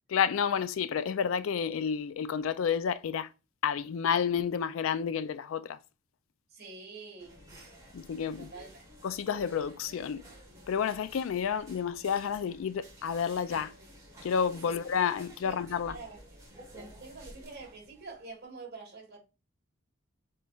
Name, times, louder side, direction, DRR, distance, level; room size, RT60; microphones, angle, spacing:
voice 1, 0.1-3.3 3.6-5.8 7.9-8.5 9.0-10.2 10.7-13.7 14.2-16.0, left 7 dB, 70° left, 0.3 m, -30 dB
voice 2, 6.5-7.5 8.4-9.2 14.6-14.8 15.4-16.2 16.6-19.2, right 3 dB, 55° right, 1.5 m, -47 dB
sound 1, 7.2-18.3, equal, 15° right, 1.4 m, -52 dB
6.8 x 3.1 x 2.3 m
head